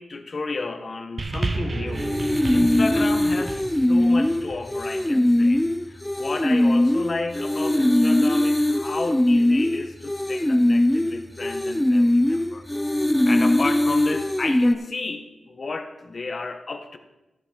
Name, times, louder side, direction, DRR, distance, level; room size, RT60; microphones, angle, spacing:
voice 1, 0.0-2.1 2.5-12.7 13.2-17.0, left 3 dB, 45° left, 8 dB, 0.9 m, -32 dB
sound 1, 1.2-5.7 6.6-6.7, right 3 dB, 35° right, 0.6 m, -32 dB
sound 2, 2.0-14.8, left 1 dB, 10° left, 0.3 m, -21 dB
14.0 x 5.9 x 4.3 m, 0.99 s
wide cardioid pair, 95°, 0 cm